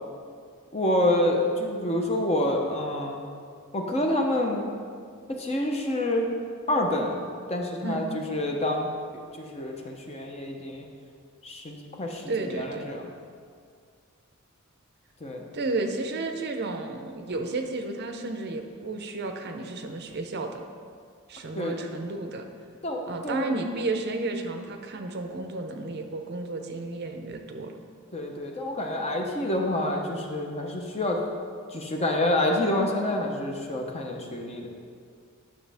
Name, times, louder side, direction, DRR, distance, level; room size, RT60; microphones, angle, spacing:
voice 1, 0.7-3.2 3.7-4.7 5.3-6.3 6.7-7.2 7.5-8.9 9.4-10.9 11.4-12.2 12.5-13.1 15.2-15.5 21.5-21.7 22.8-23.4 28.1-31.2 31.7-34.7, left 1 dB, 30° left, 1 dB, 0.8 m, -27 dB
voice 2, 12.3-12.9 15.5-20.6 21.3-22.5 23.0-27.7, right 3 dB, 50° right, 5 dB, 0.6 m, -32 dB
9.8 x 6.2 x 3.4 m, 2.2 s
head